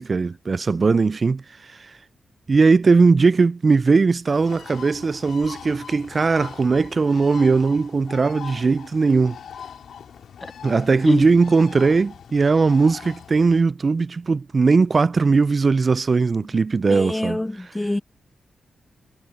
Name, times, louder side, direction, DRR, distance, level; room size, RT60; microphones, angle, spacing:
voice 1, 0.0-1.9 2.5-9.4 10.6-17.4, right 4 dB, 45° right, 0.3 m, -19 dB
Bird, 4.3-13.6, left 8 dB, 80° left, 4.5 m, -41 dB
voice 2, 16.9-18.0, left 1 dB, 15° left, 0.5 m, -25 dB
cardioid pair, 60°, 0 cm